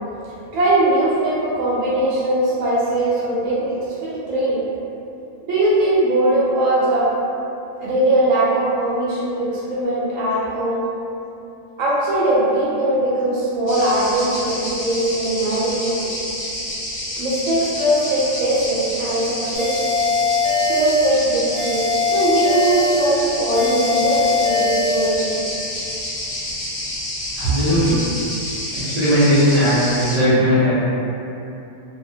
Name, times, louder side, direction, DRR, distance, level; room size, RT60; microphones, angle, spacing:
voice 1, 0.5-4.6 5.4-7.1 7.8-10.8 11.8-16.1 17.2-19.9 20.7-21.8 22.1-25.4 27.5-27.9, right 1 dB, 85° right, -8 dB, 1.0 m, -20 dB
sound 1, 13.7-30.2, left 1 dB, 55° left, 0.9 m, -29 dB
sound 2, 19.5-21.1 21.5-23.1 23.5-25.1, left 4 dB, 35° left, 0.6 m, -21 dB
voice 2, 27.4-28.0 28.7-30.7, equal, 50° right, -13 dB, 0.4 m, -17 dB
2.5 x 2.1 x 2.6 m, 2.9 s
omnidirectional pair, 1.4 m